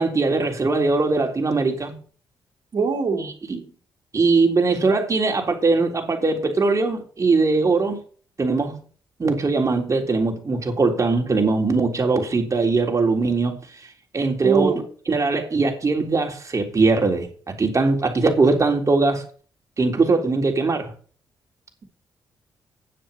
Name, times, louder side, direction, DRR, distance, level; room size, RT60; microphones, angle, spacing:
voice 1, 0.0-1.9 3.2-3.6 4.1-8.0 8.4-8.7 9.2-13.6 14.1-14.7 15.1-17.3 17.6-19.3 19.8-20.9, right 3 dB, 35° right, 3.5 m, -21 dB
voice 2, 2.7-3.3 14.4-14.8, right 5 dB, 55° right, 3.2 m, -22 dB
9.7 x 7.6 x 7.1 m
supercardioid pair, 60°, 9 cm